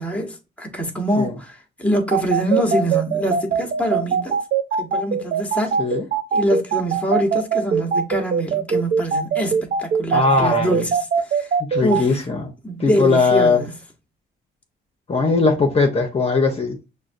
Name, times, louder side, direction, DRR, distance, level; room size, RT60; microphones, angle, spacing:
voice 1, 0.0-4.3 4.8-5.8 6.3-11.5 11.8-12.2 12.6-13.7, equal, 5° left, 1.1 m, -24 dB
sound 1, 2.1-12.0, right 6 dB, 50° right, 0.5 m, -21 dB
voice 2, 10.1-10.8 11.7-12.5 12.8-13.6 15.1-16.8, left 3 dB, 30° left, 0.8 m, -19 dB
6.0 x 2.2 x 2.6 m
cardioid pair, 90°, 20 cm